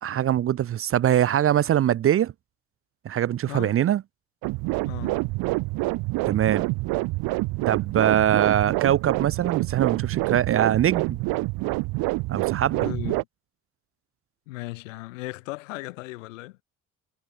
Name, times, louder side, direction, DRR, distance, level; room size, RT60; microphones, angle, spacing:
voice 1, 0.0-2.3 3.0-4.0 6.3-6.7 7.7-11.2 12.3-12.9, right 11 dB, 35° right, 0.5 m, -22 dB
sound 1, 4.4-13.2, right 24 dB, 70° right, 1.7 m, -27 dB
voice 2, 4.9-5.3 12.7-13.3 14.5-16.6, left 21 dB, 80° left, 7.5 m, -36 dB
hypercardioid pair, 55°, 38 cm